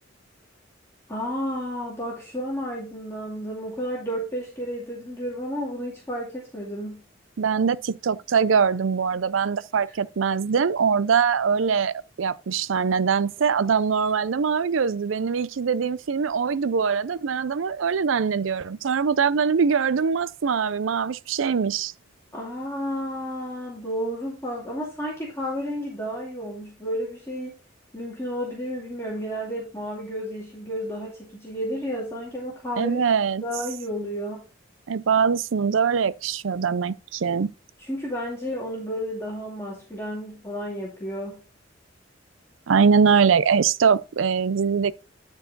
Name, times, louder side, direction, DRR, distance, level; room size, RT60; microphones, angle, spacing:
voice 1, 1.1-7.0 22.3-27.6 27.9-33.0 33.4-34.4 37.8-41.4, equal, 15° left, 2.5 m, -32 dB
voice 2, 7.4-21.9 32.8-33.4 34.9-37.5 42.7-44.9, right 6 dB, 80° right, 0.5 m, -22 dB
12.0 x 4.7 x 4.0 m
head